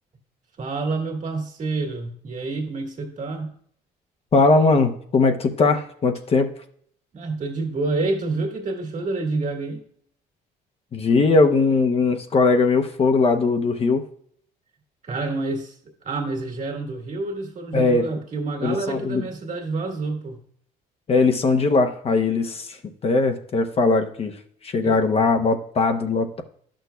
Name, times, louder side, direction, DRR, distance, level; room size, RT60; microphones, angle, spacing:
voice 1, 0.6-3.5 7.1-9.8 15.0-20.4 24.8-25.0, right 3 dB, 45° right, 1 dB, 1.8 m, -28 dB
voice 2, 4.3-6.5 10.9-14.0 17.7-18.1 18.6-19.2 21.1-22.8 23.0-24.3 24.6-26.4, left 3 dB, 35° left, 5 dB, 0.8 m, -20 dB
11.0 x 6.3 x 2.3 m, 0.62 s
cardioid pair, 110°, 17 cm